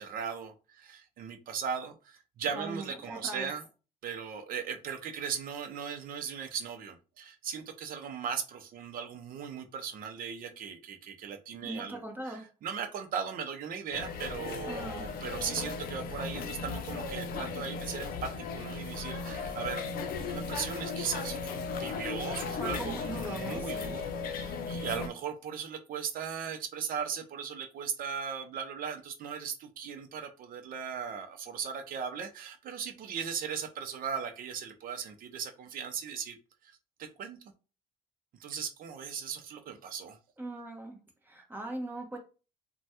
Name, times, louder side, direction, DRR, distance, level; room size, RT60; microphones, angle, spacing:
voice 1, 0.0-3.6 4.0-19.9 20.2-21.4 21.7-36.4 36.6-37.4 38.4-40.2, right 7 dB, 55° right, 0.6 m, -38 dB
voice 2, 2.5-3.5 11.6-12.5 14.7-15.1 22.6-23.9 40.4-41.0 41.2-42.2, right 2 dB, 10° right, 1.0 m, -40 dB
sound 1, 13.9-25.1, left 5 dB, 60° left, 0.5 m, -36 dB
3.2 x 2.2 x 2.8 m
cardioid pair, 110°, 17 cm